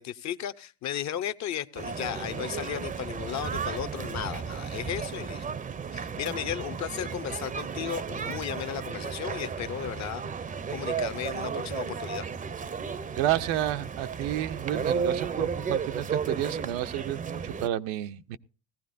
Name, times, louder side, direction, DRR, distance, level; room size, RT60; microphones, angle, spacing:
voice 1, 0.0-5.5 5.9-10.2 10.7-12.3, left 10 dB, 50° left, 0.7 m, -35 dB
sound 1, 1.7-17.7, right 6 dB, 25° right, 0.5 m, -34 dB
voice 2, 13.2-18.4, right 12 dB, 80° right, 0.7 m, -30 dB
18.0 x 15.0 x 2.6 m
supercardioid pair, 85°, 35 cm